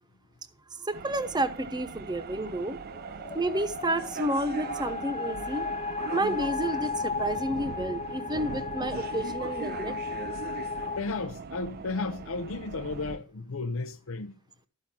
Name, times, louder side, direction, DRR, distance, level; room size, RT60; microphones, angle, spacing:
voice 1, 0.7-2.8 3.3-5.7 6.1-10.0, right 1 dB, 20° right, 0.9 m, -30 dB
sound 1, 0.9-13.2, right 5 dB, 45° right, 0.4 m, -40 dB
sound 2, 2.1-11.0, left 4 dB, 30° left, 0.6 m, -35 dB
sound 3, 5.3-6.3, left 1 dB, 90° right, 1.5 m, -50 dB
voice 2, 11.0-14.3, left 3 dB, 65° left, 0.7 m, -33 dB
13.5 x 5.3 x 7.3 m
head